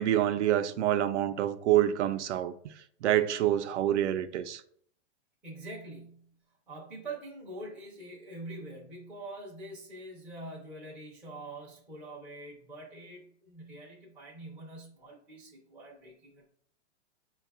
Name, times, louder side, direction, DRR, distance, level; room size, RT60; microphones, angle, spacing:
voice 1, 0.0-2.5 3.0-4.6, right 12 dB, 85° right, 0.5 m, -27 dB
voice 2, 5.4-6.3 6.7-16.5, right 2 dB, 5° right, 0.4 m, -45 dB
4.6 x 2.3 x 3.4 m
supercardioid pair, 165°, 34 cm